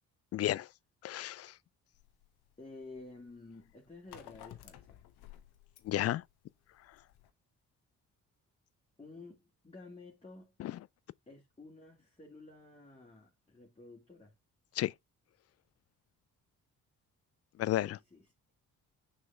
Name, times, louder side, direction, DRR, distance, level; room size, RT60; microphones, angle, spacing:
voice 1, 0.3-0.7 1.0-1.5 5.8-6.2 10.6-10.8 14.8-14.9 17.6-18.0, left 14 dB, 40° left, 0.4 m, -32 dB
sound 1, 1.9-7.3, left 12 dB, 65° left, 1.0 m, -55 dB
voice 2, 2.6-5.0 9.0-10.5 11.3-14.3 17.8-18.3, left 3 dB, 15° left, 2.2 m, -52 dB
6.4 x 4.3 x 3.4 m
hypercardioid pair, 45°, 41 cm